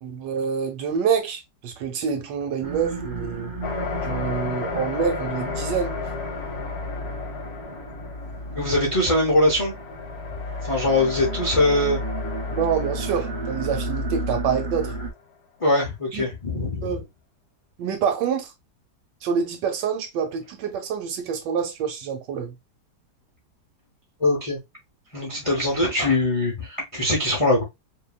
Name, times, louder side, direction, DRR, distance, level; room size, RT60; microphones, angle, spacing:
voice 1, 0.0-3.5 4.0-6.0 12.5-14.9 16.1-16.3 16.8-17.1 17.8-18.5 19.2-22.5, right 7 dB, 80° right, 1.4 m, -26 dB
sound 1, 2.6-15.1, right 1 dB, 60° right, 0.5 m, -32 dB
sound 2, 3.6-15.1, left 6 dB, 70° left, 1.0 m, -35 dB
voice 2, 8.5-9.7 10.3-12.0 15.6-17.0 24.2-24.6 25.1-27.6, left 1 dB, 40° left, 0.4 m, -22 dB
2.7 x 2.6 x 2.3 m
omnidirectional pair, 1.9 m